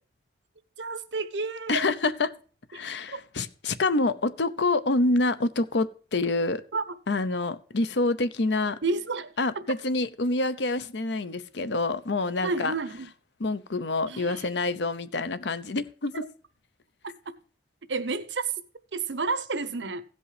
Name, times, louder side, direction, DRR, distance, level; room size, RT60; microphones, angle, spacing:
voice 1, 0.8-1.9 2.7-2.8 3.1-3.2 6.7-6.9 8.8-9.3 12.4-13.1 14.1-14.5 17.9-18.5 18.9-20.0, right 3 dB, 90° right, 1.0 m, -30 dB
voice 2, 1.7-2.3 2.7-6.6 7.1-8.8 9.4-12.7 13.4-16.3, left 2 dB, 75° left, 0.8 m, -27 dB
16.0 x 5.4 x 4.9 m
head